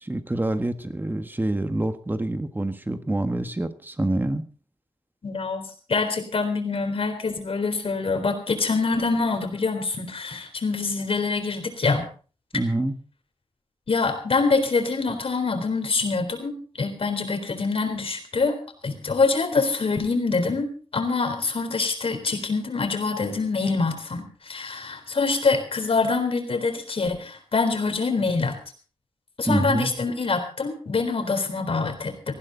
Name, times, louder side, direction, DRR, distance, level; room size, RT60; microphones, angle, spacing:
voice 1, 0.0-4.4 12.5-12.9 29.5-29.9, right 1 dB, 20° right, 8 dB, 1.6 m, -26 dB
voice 2, 5.2-12.0 13.9-18.6 18.8-28.5 29.4-32.4, left 4 dB, 65° left, 6 dB, 3.9 m, -25 dB
19.0 x 15.0 x 4.0 m, 0.39 s
wide cardioid pair, 120°, 11 cm